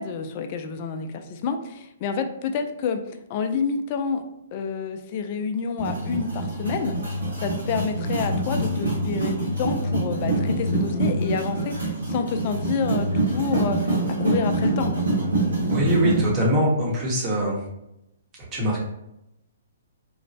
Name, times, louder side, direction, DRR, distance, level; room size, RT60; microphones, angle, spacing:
voice 1, 0.0-4.2 4.5-15.1, left 5 dB, 40° left, 6 dB, 0.3 m, -29 dB
sound 1, 5.8-16.3, right 2 dB, 90° right, 1.3 m, -25 dB
voice 2, 15.7-17.6 18.5-18.8, equal, 25° right, -3 dB, 0.8 m, -22 dB
3.0 x 2.1 x 2.6 m, 0.85 s
hypercardioid pair, 130°, 0 cm